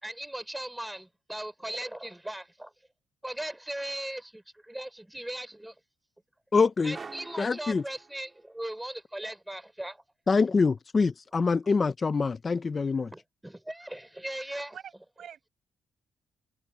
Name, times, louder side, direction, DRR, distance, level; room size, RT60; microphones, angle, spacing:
voice 1, 0.0-2.7 3.2-5.7 6.8-10.0 13.1-14.8, right 1 dB, 5° right, 4.5 m, -38 dB
voice 2, 6.5-7.0 7.4-7.8 10.3-13.1, left 4 dB, 35° left, 0.7 m, -25 dB
sound 1, 6.9-8.7, right 4 dB, 35° right, 3.1 m, -46 dB
voice 3, 14.7-15.5, right 9 dB, 60° right, 6.9 m, -46 dB
cardioid pair, 90°, 0 cm